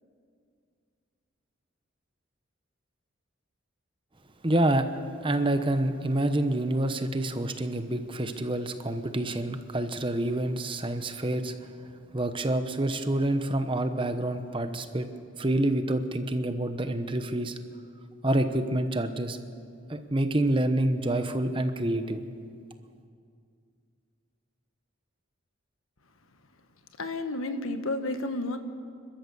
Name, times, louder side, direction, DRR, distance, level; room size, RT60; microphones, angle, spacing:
voice 1, 4.4-4.9 5.1-11.7 12.1-15.1 15.4-17.6 18.2-19.4 19.9-22.2, right 1 dB, 25° right, 8 dB, 1.0 m, -27 dB
voice 2, 27.0-28.6, left 2 dB, 85° left, 8 dB, 1.4 m, -31 dB
29.5 x 13.0 x 6.9 m, 2.3 s
head